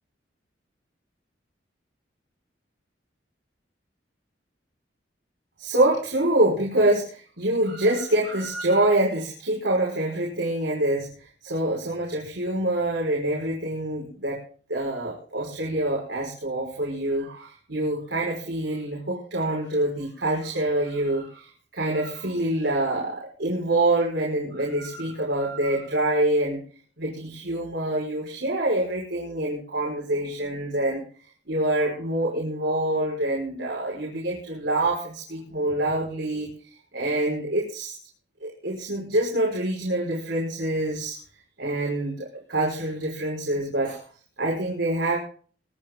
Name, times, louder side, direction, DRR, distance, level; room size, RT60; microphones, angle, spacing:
voice 1, 5.6-14.4 14.7-26.6 27.0-31.0 31.5-37.9 38.4-41.2 41.6-44.0 44.4-45.2, right 1 dB, 85° right, -3 dB, 5.5 m, -26 dB
24.0 x 10.0 x 3.8 m, 0.43 s
head